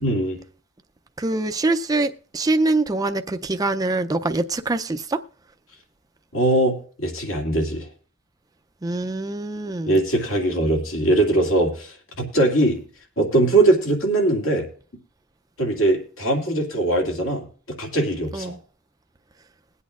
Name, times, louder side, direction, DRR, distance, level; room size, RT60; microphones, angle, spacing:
voice 1, 0.0-0.4 6.3-7.9 9.9-12.8 13.2-14.7 15.6-17.5 17.8-18.6, right 2 dB, 70° left, 2.4 m, -21 dB
voice 2, 1.2-5.2 8.8-10.0 18.3-18.6, right 2 dB, 20° right, 0.4 m, -24 dB
21.0 x 8.3 x 2.4 m
head